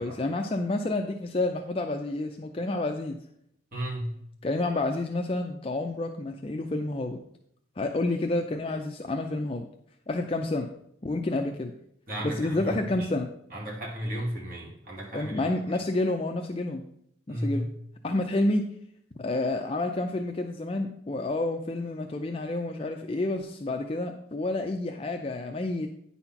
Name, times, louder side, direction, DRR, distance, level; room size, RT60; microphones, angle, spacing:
voice 1, 0.0-3.2 4.4-7.2 7.8-9.7 10.1-10.7 11.0-11.7 12.2-13.3 15.1-16.8 17.3-17.7 18.0-18.7 19.2-25.9, left 2 dB, 30° left, 3 dB, 0.5 m, -29 dB
voice 2, 3.7-4.2 12.1-13.1 13.5-15.3 17.3-17.7, equal, 45° right, -3 dB, 2.0 m, -34 dB
9.6 x 4.2 x 5.8 m, 0.72 s
head